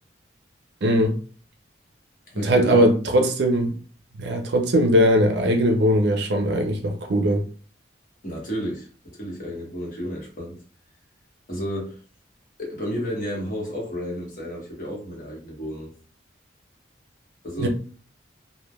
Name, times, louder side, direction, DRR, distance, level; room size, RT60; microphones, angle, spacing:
voice 1, 0.8-1.2 2.4-3.8 4.2-7.4 17.6-17.7, equal, 60° right, 0.5 m, -20 dB
voice 2, 2.3-2.8 8.2-10.6 11.5-12.0 12.6-15.9 17.4-17.7, equal, 45° left, 1.1 m, -32 dB
3.2 x 2.1 x 2.2 m
head